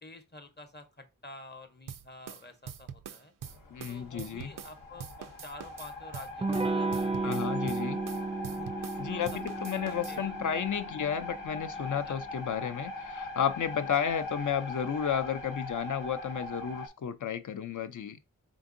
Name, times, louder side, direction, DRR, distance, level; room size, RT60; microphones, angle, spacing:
voice 1, 0.0-3.3 3.9-8.0 8.5-8.7 9.1-9.4 9.7-10.4 11.9-12.2, left 2 dB, 30° left, 0.8 m, -49 dB
sound 1, 1.9-4.7 5.0-9.0 9.2-10.2, right 8 dB, 80° right, 0.5 m, -44 dB
sound 2, 3.4-16.9, left 2 dB, 85° left, 0.9 m, -41 dB
voice 2, 3.7-4.5 7.2-8.0 9.0-18.2, left 8 dB, 65° left, 0.5 m, -32 dB
Electric guitar / Strum, 6.4-11.8, right 3 dB, 20° right, 0.3 m, -34 dB
3.8 x 3.6 x 2.5 m
wide cardioid pair, 60°, 32 cm